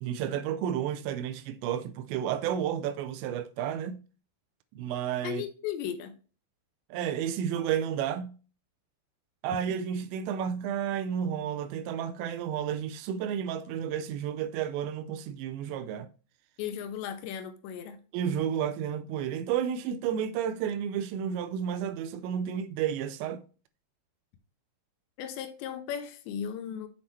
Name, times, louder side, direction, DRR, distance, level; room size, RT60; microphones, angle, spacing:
voice 1, 0.0-4.0 4.7-5.4 6.9-8.3 9.4-16.1 18.1-23.4, right 9 dB, 85° right, 2.7 m, -31 dB
voice 2, 5.2-6.1 16.6-18.0 25.2-26.9, left 8 dB, 80° left, 2.8 m, -36 dB
7.2 x 6.0 x 3.2 m
omnidirectional pair, 5.2 m